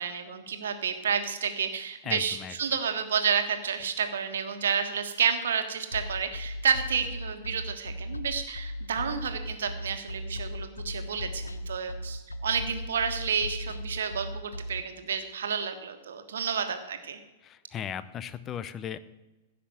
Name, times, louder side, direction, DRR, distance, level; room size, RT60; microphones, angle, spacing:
voice 1, 0.0-17.2, right 7 dB, 65° right, 7 dB, 1.5 m, -30 dB
voice 2, 2.0-2.5 17.4-19.0, left 9 dB, 25° left, 15 dB, 0.7 m, -37 dB
sound 1, 5.9-14.8, left 1 dB, 80° left, 0.7 m, -37 dB
15.5 x 6.0 x 7.7 m, 1.1 s
figure-of-eight pair, 100°, 0 cm